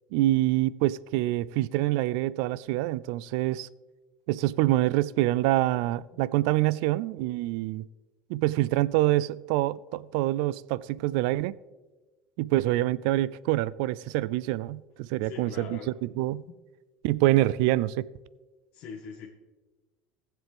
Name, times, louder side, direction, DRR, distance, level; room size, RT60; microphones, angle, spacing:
voice 1, 0.1-3.7 4.3-7.8 8.3-11.5 12.4-16.4 17.0-18.1, right 16 dB, 75° right, 0.3 m, -26 dB
voice 2, 15.2-15.9 16.5-16.6 18.7-19.3, left 6 dB, 60° left, 1.4 m, -42 dB
16.0 x 7.5 x 3.5 m
supercardioid pair, 110°, 4 cm